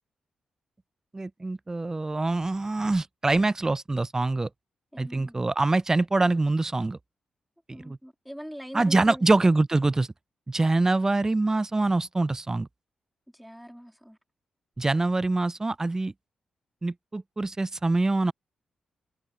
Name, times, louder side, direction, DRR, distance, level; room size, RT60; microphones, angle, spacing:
voice 1, 1.1-4.5 5.0-7.0 7.7-8.0 8.7-10.1 10.5-12.7 14.8-16.1 16.8-18.3, right 2 dB, 25° right, 0.3 m, -24 dB
voice 2, 4.9-5.5 7.7-9.3 13.3-14.2, equal, ahead, 2.5 m, -42 dB
supercardioid pair, 45°, 2 cm